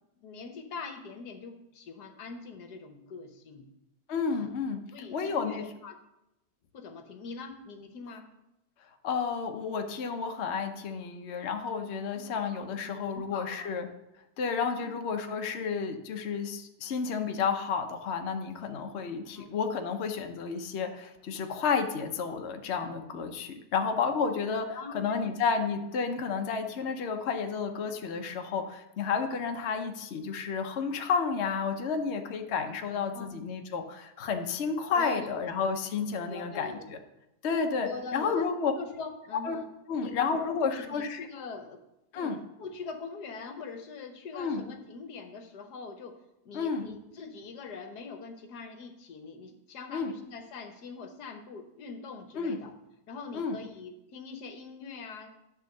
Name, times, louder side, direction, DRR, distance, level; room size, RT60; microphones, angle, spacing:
voice 1, 0.2-3.7 4.3-4.5 4.9-6.0 6.7-8.3 12.7-13.7 14.8-14.9 19.3-19.5 24.7-25.3 32.9-33.3 34.9-35.5 36.3-36.9 37.8-38.5 38.8-39.7 40.0-41.8 42.1-46.1 46.4-52.8 53.1-55.5, left 4 dB, 70° left, 6 dB, 1.5 m, -43 dB
voice 2, 4.1-4.8 5.1-5.7 9.0-13.9 14.4-37.0 37.4-38.7 39.4-39.6 39.9-41.3 42.1-42.4 44.3-44.6 46.5-46.9 49.9-50.1 52.4-52.6 53.3-53.6, left 5 dB, 50° left, 5 dB, 0.9 m, -31 dB
11.0 x 3.7 x 6.5 m, 0.89 s
omnidirectional pair, 1.8 m